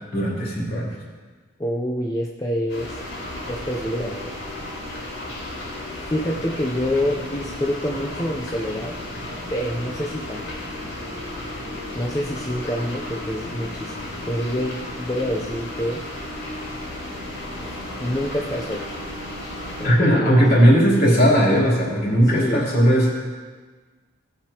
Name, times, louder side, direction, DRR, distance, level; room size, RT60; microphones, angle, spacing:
voice 1, 0.1-0.9 19.8-23.1, equal, 50° left, -6 dB, 3.3 m, -17 dB
voice 2, 1.6-3.0 3.5-4.4 5.9-9.0 9.5-10.6 11.9-16.0 17.6-18.9 19.8-20.4 22.2-22.7, equal, 15° left, -2 dB, 0.6 m, -27 dB
sound 1, 2.7-19.9, left 1 dB, 85° left, 3.9 m, -34 dB
18.5 x 7.9 x 2.9 m, 1.4 s
head